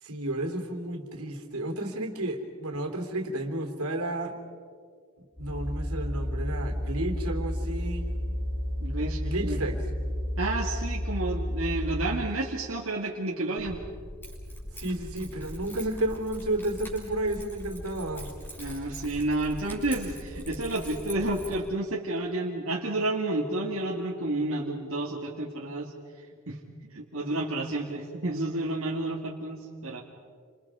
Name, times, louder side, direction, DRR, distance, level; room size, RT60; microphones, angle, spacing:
voice 1, 0.0-4.3 5.4-8.1 9.2-9.8 14.7-18.3, right 1 dB, 85° right, 5 dB, 3.1 m, -32 dB
sound 1, 5.4-12.3, equal, 5° right, 5.8 m, -31 dB
voice 2, 8.8-9.2 9.5-9.6 10.4-13.8 18.6-25.9 26.5-26.6 26.9-30.0, right 2 dB, 65° right, -3 dB, 2.2 m, -30 dB
Keys jangling, 13.6-21.6, equal, 10° left, 6.3 m, -42 dB
29.5 x 27.0 x 4.9 m, 2.1 s
head